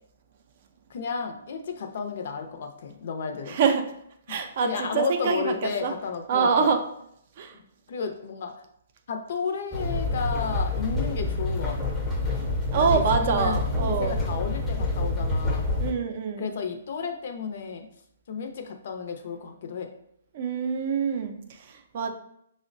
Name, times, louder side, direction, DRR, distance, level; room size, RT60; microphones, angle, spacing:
voice 1, 0.9-3.6 4.3-6.7 7.5-7.6 7.9-8.6 9.1-12.0 12.7-15.7 16.4-17.9 18.3-19.9, left 5 dB, 55° left, 5 dB, 0.5 m, -33 dB
voice 2, 3.5-3.9 4.3-5.9 6.3-6.8 7.4-7.5 12.7-14.2 15.8-16.5 20.3-22.1, right 6 dB, 45° right, 5 dB, 0.4 m, -25 dB
sound 1, 9.7-15.9, left 2 dB, 5° left, 0.5 m, -27 dB
5.1 x 2.1 x 2.5 m, 0.71 s
hypercardioid pair, 155°, 0 cm